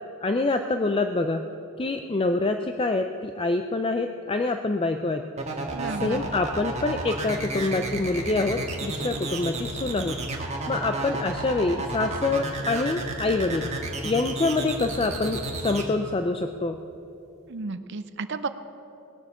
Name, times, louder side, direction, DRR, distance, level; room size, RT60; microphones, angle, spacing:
voice 1, 0.2-1.5 1.8-5.2 6.0-10.2 10.7-13.7 14.0-16.8, left 3 dB, 25° left, 6 dB, 0.4 m, -26 dB
sound 1, 5.4-15.8, right 2 dB, 30° right, 1.5 m, -32 dB
voice 2, 5.7-6.2 17.5-18.5, right 4 dB, 55° right, 11 dB, 0.6 m, -33 dB
19.0 x 8.0 x 7.0 m, 2.8 s
head